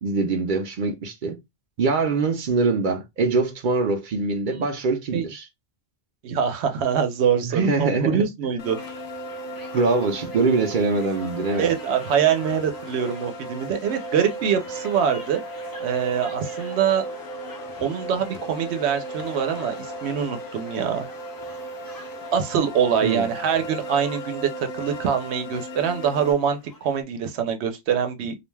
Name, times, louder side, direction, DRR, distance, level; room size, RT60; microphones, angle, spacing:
voice 1, 0.0-1.4 1.8-5.5 7.4-8.3 9.7-11.7 23.0-23.3, right 3 dB, 55° right, 0.6 m, -23 dB
voice 2, 6.2-8.8 11.6-15.4 15.8-17.0 17.8-21.1 22.3-28.3, right 8 dB, 90° right, 0.9 m, -24 dB
sound 1, 8.6-26.3, right 2 dB, 65° left, 0.8 m, -36 dB
sound 2, 8.7-27.0, left 3 dB, 35° left, 0.3 m, -45 dB
2.4 x 2.2 x 3.1 m
omnidirectional pair, 1.1 m